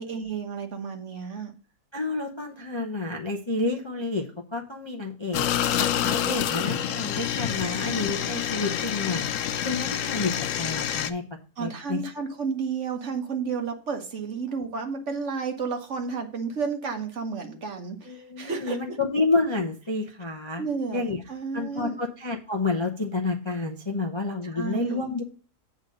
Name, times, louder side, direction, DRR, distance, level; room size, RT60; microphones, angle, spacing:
voice 1, 0.0-1.5 11.6-19.0 20.6-21.0 21.3-22.0 24.5-25.0, right 5 dB, 50° right, 5 dB, 1.4 m, -32 dB
voice 2, 1.9-5.5 5.8-11.2 11.6-12.0 18.1-20.6 20.9-21.2 21.5-25.2, left 3 dB, 25° left, 1 dB, 0.7 m, -29 dB
sound 1, 5.3-11.1, left 10 dB, 65° left, 0.8 m, -27 dB
8.1 x 3.9 x 6.4 m, 0.40 s
omnidirectional pair, 1.7 m